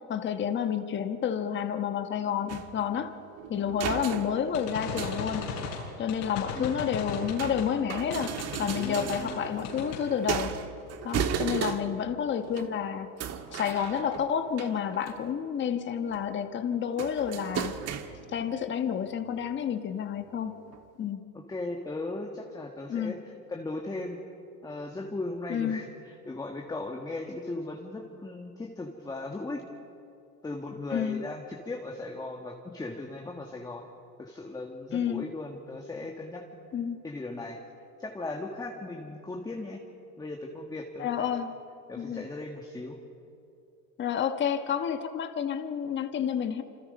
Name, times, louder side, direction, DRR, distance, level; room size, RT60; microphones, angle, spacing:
voice 1, 0.1-3.1 3.5-5.5 6.0-8.3 8.6-10.5 11.0-13.1 13.5-18.0 18.3-20.6 21.0-21.2 22.9-23.2 25.5-25.8 30.9-31.2 34.9-35.2 36.7-37.0 41.0-41.5 42.0-42.2 44.0-46.6, left 8 dB, 25° left, 8 dB, 1.3 m, -30 dB
sound 1, 2.5-5.8 6.6-12.1 12.4-12.7 13.2-15.4 15.8-16.2 17.0-18.5 19.4-19.5 20.3-20.4 20.7-20.8, right 8 dB, 30° right, 1.5 m, -36 dB
sound 2, 4.5-7.7 8.1-9.4 9.6-10.0, left 6 dB, 80° left, 7.3 m, -37 dB
voice 2, 8.7-9.4 21.3-24.2 24.6-29.6 30.4-33.8 34.2-36.4 37.0-37.6 38.0-39.8 40.2-41.4 41.9-43.0, left 2 dB, 10° left, 1 dB, 1.7 m, -37 dB
27.5 x 26.0 x 5.4 m, 2.7 s
supercardioid pair, 130°, 47 cm